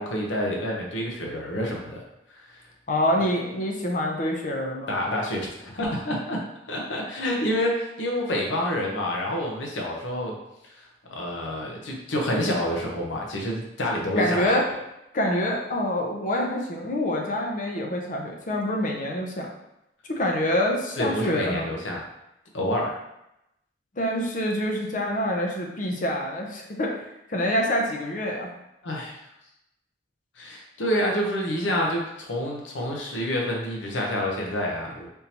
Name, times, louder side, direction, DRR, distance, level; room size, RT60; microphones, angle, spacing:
voice 1, 0.0-2.0 2.5-2.6 4.9-6.4 6.7-10.3 10.6-14.5 21.0-22.0 22.5-23.0 28.8-29.2 30.4-35.1, equal, 85° left, -1 dB, 0.7 m, -28 dB
voice 2, 2.9-4.9 14.2-14.6 15.1-19.5 20.1-21.7 24.0-26.9 27.3-28.5, left 1 dB, 45° left, 1 dB, 0.6 m, -26 dB
3.6 x 2.7 x 2.9 m, 0.85 s
head